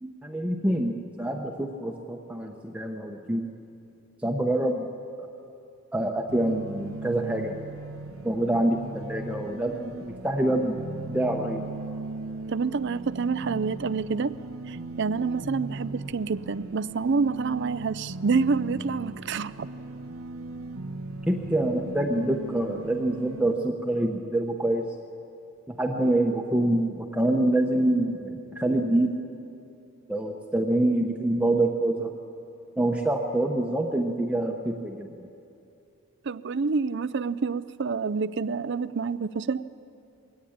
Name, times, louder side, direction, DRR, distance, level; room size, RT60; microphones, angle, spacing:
voice 1, 0.0-3.5 4.2-4.9 5.9-7.6 8.2-10.8 11.1-11.7 21.3-24.9 25.7-29.2 30.1-32.1 32.8-35.3, right 1 dB, 5° right, 1 dB, 0.9 m, -26 dB
sound 1, 6.3-23.5, right 2 dB, 75° right, 0.9 m, -38 dB
voice 2, 12.5-14.4 14.7-19.7 36.2-39.7, right 4 dB, 55° right, 17 dB, 0.5 m, -28 dB
22.0 x 17.5 x 8.7 m, 2.6 s
head